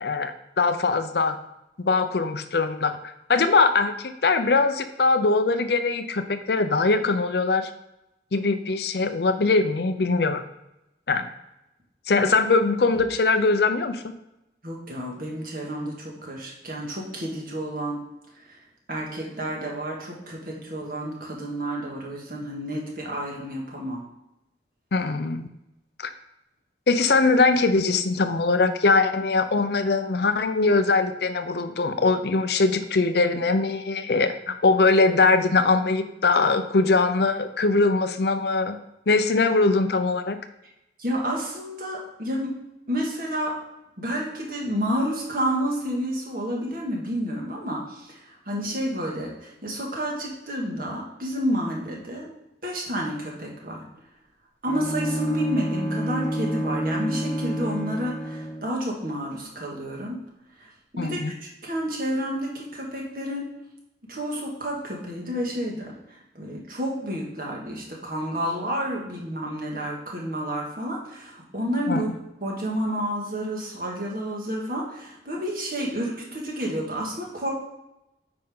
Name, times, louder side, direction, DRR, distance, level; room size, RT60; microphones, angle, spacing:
voice 1, 0.0-1.4 1.8-3.0 3.3-7.7 8.3-10.4 11.1-11.3 12.1-14.0 24.9-25.5 26.0-26.1 26.9-38.8 39.1-40.4 61.0-61.3 71.9-72.0, left 3 dB, 60° left, 9 dB, 0.6 m, -22 dB
voice 2, 14.6-18.0 18.5-18.6 18.9-24.1 41.0-42.5 42.9-43.6 44.0-48.2 48.5-52.3 52.6-53.9 54.6-60.2 60.9-63.5 64.0-66.0 66.4-72.1 72.4-77.5, equal, 50° right, -2 dB, 1.9 m, -30 dB
Bowed string instrument, 54.7-58.7, right 1 dB, 10° left, 1.2 m, -29 dB
8.7 x 5.2 x 3.7 m, 0.90 s
head